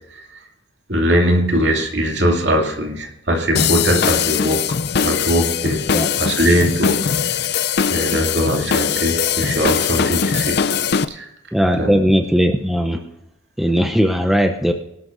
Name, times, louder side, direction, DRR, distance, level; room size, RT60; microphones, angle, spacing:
voice 1, 0.1-0.4 0.9-5.9 6.2-7.5 7.9-10.7 11.1-11.3 11.8-12.0, equal, 60° right, 1 dB, 2.6 m, -20 dB
sound 1, 3.6-11.1, left 7 dB, 55° left, 0.5 m, -20 dB
voice 2, 11.5-13.0 13.6-14.7, equal, ahead, 5 dB, 0.6 m, -17 dB
24.5 x 11.5 x 2.6 m, 0.87 s
head